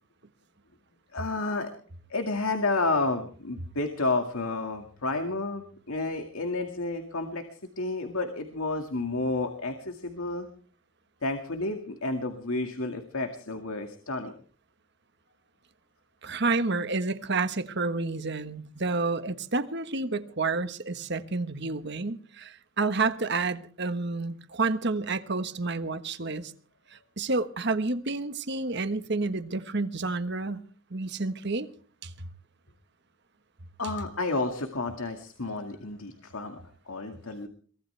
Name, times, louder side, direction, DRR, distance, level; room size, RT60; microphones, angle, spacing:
voice 1, 1.1-1.7 2.1-7.5 7.8-10.5 11.2-14.3 33.8-36.6 36.9-37.5, left 2 dB, 85° left, 2.1 m, -31 dB
voice 2, 16.2-26.5 26.9-30.6 30.9-31.7 32.0-32.1, right 3 dB, 55° right, 1.4 m, -29 dB
23.5 x 17.5 x 3.4 m
head